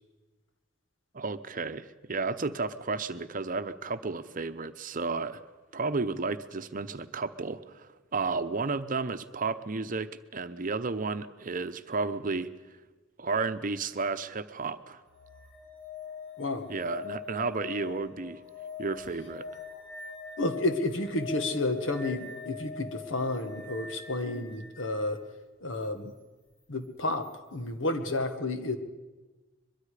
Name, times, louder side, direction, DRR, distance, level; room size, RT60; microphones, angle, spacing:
voice 1, 1.1-5.4 5.7-12.5 13.2-15.0 16.7-18.4 18.8-19.5, right 4 dB, 45° right, 11 dB, 0.8 m, -32 dB
sound 1, 15.1-24.9 27.2-27.3, left 5 dB, 70° left, 6.4 m, -43 dB
voice 2, 20.4-25.2 25.6-26.1 26.7-28.8, left 2 dB, 85° left, 8 dB, 1.6 m, -31 dB
23.0 x 22.5 x 5.0 m, 1.2 s
head